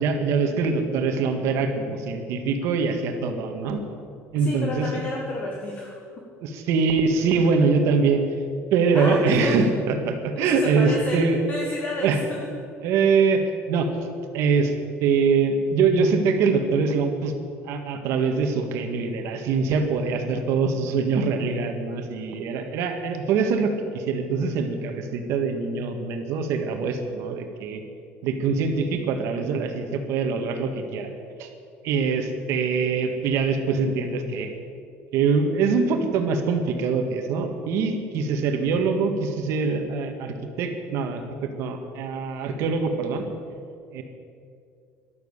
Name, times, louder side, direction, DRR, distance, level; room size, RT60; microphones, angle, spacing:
voice 1, 0.0-3.8 4.3-4.9 6.4-8.2 8.7-11.4 12.0-12.2 12.8-14.0 14.3-14.7 15.0-17.3 17.6-27.8 28.2-31.1 31.4-31.5 31.8-34.5 35.1-43.3 43.9-44.0, right 5 dB, 60° right, 6 dB, 1.7 m, -23 dB
voice 2, 4.3-6.0 8.9-9.7 10.3-11.2 11.5-12.5, left 2 dB, 30° left, -1 dB, 1.6 m, -31 dB
13.0 x 12.0 x 6.7 m, 2.4 s
cardioid pair, 160°, 5 cm